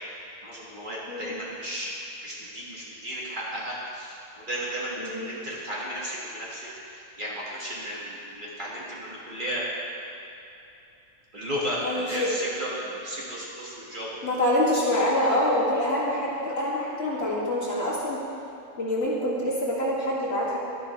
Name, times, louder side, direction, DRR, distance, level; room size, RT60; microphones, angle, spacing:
voice 1, 0.4-1.9 2.2-4.2 4.5-6.7 6.9-9.6 11.3-14.1, equal, 35° right, -6 dB, 1.7 m, -34 dB
voice 2, 4.9-5.3 11.8-12.4 14.2-18.2 18.8-20.6, left 1 dB, 50° left, -7 dB, 2.2 m, -26 dB
12.0 x 11.0 x 3.1 m, 2.7 s
omnidirectional pair, 1.4 m